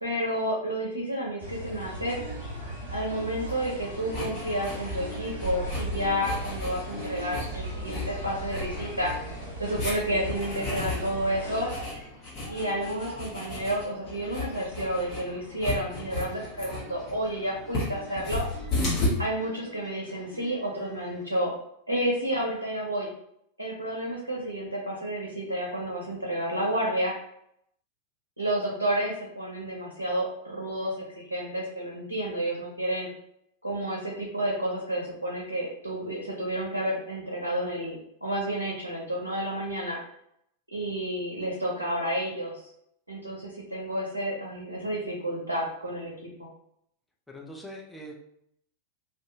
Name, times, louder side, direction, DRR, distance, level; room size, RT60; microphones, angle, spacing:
voice 1, 0.0-2.2 2.9-9.1 9.6-11.7 12.5-18.4 19.2-21.5 21.9-23.1 23.6-27.1 28.4-30.9 31.3-33.1 33.6-40.0 40.7-42.6 43.1-46.1 46.4-46.5, right 1 dB, 85° right, -2 dB, 0.6 m, -30 dB
sound 1, 1.4-11.9, right 1 dB, 90° left, 0.8 m, -38 dB
sound 2, 1.8-21.2, equal, 15° right, 1.2 m, -46 dB
sound 3, 3.5-19.1, left 2 dB, 35° left, 1.2 m, -35 dB
voice 2, 47.3-48.1, equal, 5° left, -1 dB, 0.5 m, -42 dB
2.6 x 2.3 x 2.7 m, 0.73 s
figure-of-eight pair, 90°, 0 cm